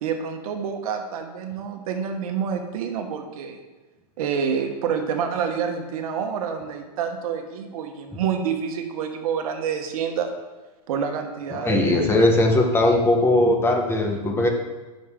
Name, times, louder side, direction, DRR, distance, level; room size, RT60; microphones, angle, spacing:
voice 1, 0.0-3.6 4.2-10.3 10.9-12.3, right 7 dB, 60° right, 5 dB, 1.3 m, -28 dB
voice 2, 11.5-14.5, left 1 dB, 10° left, 2 dB, 1.0 m, -19 dB
10.5 x 6.4 x 3.6 m, 1.2 s
hypercardioid pair, 140°, 21 cm